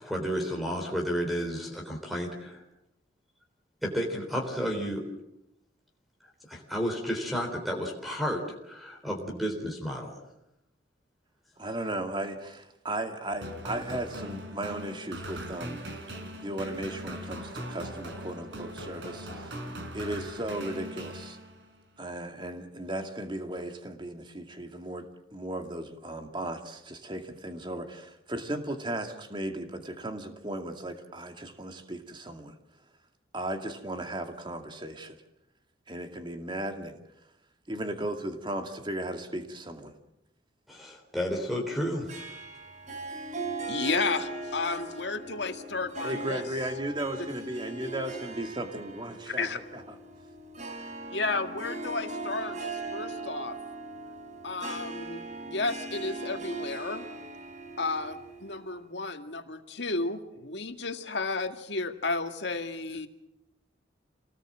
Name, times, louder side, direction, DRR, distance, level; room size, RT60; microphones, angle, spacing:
voice 1, 0.0-2.6 3.8-5.0 6.5-10.2 40.7-42.4, equal, ahead, 1 dB, 3.7 m, -32 dB
voice 2, 11.6-15.8 16.4-19.6 19.9-21.4 22.0-32.6 33.3-35.2 35.9-37.0 37.7-39.9 46.0-49.8, right 1 dB, 25° right, 5 dB, 2.4 m, -36 dB
sound 1, 13.4-21.8, equal, 65° right, 4.9 m, -40 dB
Harp, 42.1-58.8, right 3 dB, 40° right, 3.4 m, -39 dB
voice 3, 43.7-46.4 49.3-49.6 51.1-53.6 54.4-57.1 57.8-63.1, left 3 dB, 65° left, 6 dB, 2.0 m, -32 dB
28.5 x 19.5 x 7.6 m, 0.85 s
head